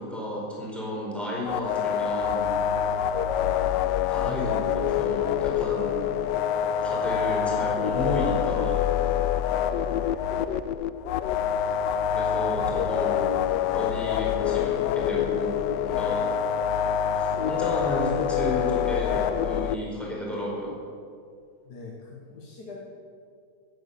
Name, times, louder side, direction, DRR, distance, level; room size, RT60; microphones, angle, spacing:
voice 1, 0.0-2.5 4.1-6.0 6.8-8.8 12.1-13.4 13.7-16.3 17.2-20.8, equal, ahead, -5 dB, 4.5 m, -32 dB
sound 1, 1.5-19.8, left 9 dB, 90° left, 1.2 m, -26 dB
voice 2, 9.9-10.5 12.5-12.8 21.6-22.8, left 3 dB, 65° left, -2 dB, 2.1 m, -44 dB
17.0 x 9.3 x 7.0 m, 2.3 s
omnidirectional pair, 1.8 m